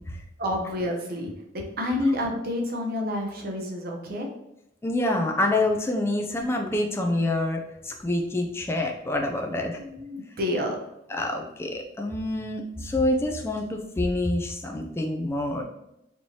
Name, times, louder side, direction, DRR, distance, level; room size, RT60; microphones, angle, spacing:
voice 1, 0.4-4.3 9.8-10.8, left 1 dB, 55° right, 1 dB, 0.7 m, -29 dB
voice 2, 4.8-9.8 11.1-15.6, left 1 dB, 15° left, 2 dB, 0.3 m, -27 dB
4.5 x 2.9 x 2.7 m, 0.83 s
head